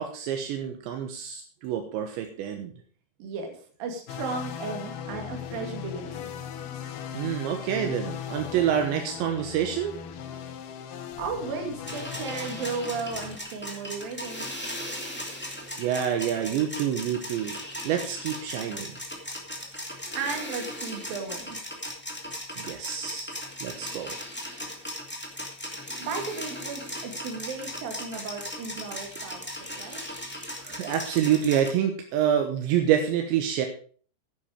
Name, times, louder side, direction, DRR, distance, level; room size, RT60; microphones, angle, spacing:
voice 1, 0.0-2.7 7.1-9.9 15.8-17.6 17.8-18.9 22.6-23.3 23.6-24.2 24.5-24.7 30.6-33.7, right 9 dB, 80° right, 5 dB, 3.3 m, -27 dB
voice 2, 3.2-6.4 11.0-14.5 20.2-21.6 26.0-30.0, right 4 dB, 55° right, 3 dB, 3.8 m, -35 dB
sound 1, 4.1-13.4, left 8 dB, 70° left, 2.8 m, -38 dB
sound 2, 11.8-31.7, equal, 15° left, 0.3 m, -37 dB
10.5 x 10.5 x 5.0 m, 0.43 s
omnidirectional pair, 5.2 m